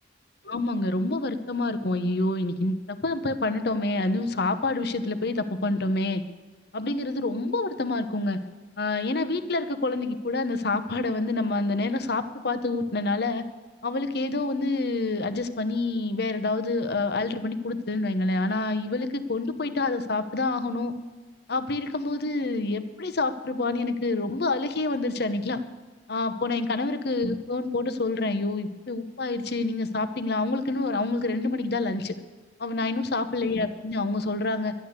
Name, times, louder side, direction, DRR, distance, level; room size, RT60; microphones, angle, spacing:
voice 1, 0.4-6.2 6.7-8.4 8.8-13.4 13.8-20.9 21.5-25.6 26.1-32.1 32.6-34.7, left 2 dB, 60° left, 10 dB, 0.9 m, -27 dB
11.5 x 11.0 x 8.2 m, 1.3 s
head